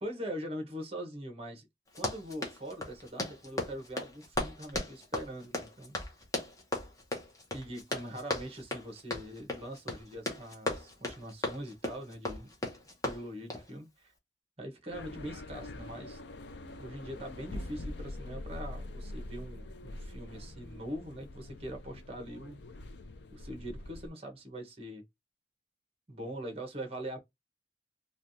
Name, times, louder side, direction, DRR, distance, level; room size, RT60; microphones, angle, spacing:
voice 1, 0.0-1.7 1.9-6.1 7.5-12.5 13.0-14.1 14.6-16.2 16.8-22.6 23.3-25.0 26.1-27.2, equal, 35° right, 1.0 m, -42 dB
Run, 1.9-13.7, left 1 dB, 20° left, 0.8 m, -37 dB
sound 1, 14.9-24.1, left 1 dB, 70° left, 0.5 m, -44 dB
3.3 x 2.4 x 2.6 m
head